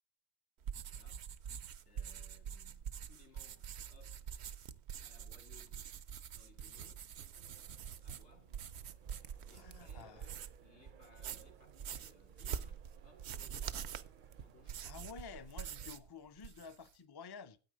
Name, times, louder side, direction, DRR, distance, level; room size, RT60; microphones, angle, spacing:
sound 1, 0.6-10.7 11.0-16.1 16.4-16.9, right 8 dB, 75° right, 0.9 m, -46 dB
voice 1, 0.9-1.3 1.8-4.6 5.0-5.9 6.3-7.1 8.0-8.6 9.5-13.9 14.4-14.9, left 4 dB, 85° left, 2.4 m, -65 dB
sound 2, 7.2-15.9, right 7 dB, 55° right, 0.7 m, -58 dB
voice 2, 9.5-10.3 14.8-17.6, left 5 dB, 30° left, 0.5 m, -51 dB
9.6 x 8.4 x 5.1 m
omnidirectional pair, 1.1 m